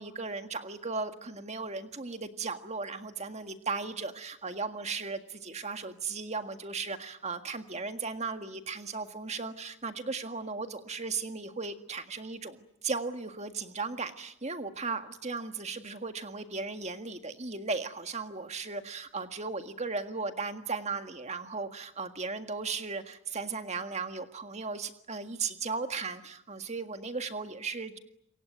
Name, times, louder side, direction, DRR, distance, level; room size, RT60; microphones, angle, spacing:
voice 1, 0.0-28.0, right 4 dB, 30° right, 7 dB, 1.8 m, -36 dB
27.5 x 23.5 x 9.3 m, 0.76 s
head